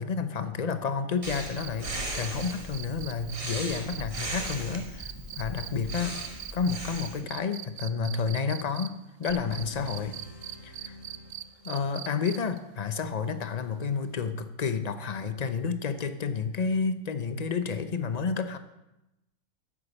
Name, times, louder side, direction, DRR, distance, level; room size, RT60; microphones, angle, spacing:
voice 1, 0.0-6.2 6.5-10.1 10.6-11.0 11.6-18.6, left 5 dB, 45° left, 11 dB, 0.5 m, -30 dB
Breathing, 1.2-7.2, right 1 dB, 20° right, 1.5 m, -38 dB
sound 1, 1.3-8.9 9.2-12.6 14.2-14.3, right 12 dB, 65° right, 0.9 m, -41 dB
sound 2, 9.3-12.1, left 2 dB, 70° left, 2.0 m, -47 dB
10.0 x 8.4 x 7.1 m, 0.93 s
omnidirectional pair, 1.6 m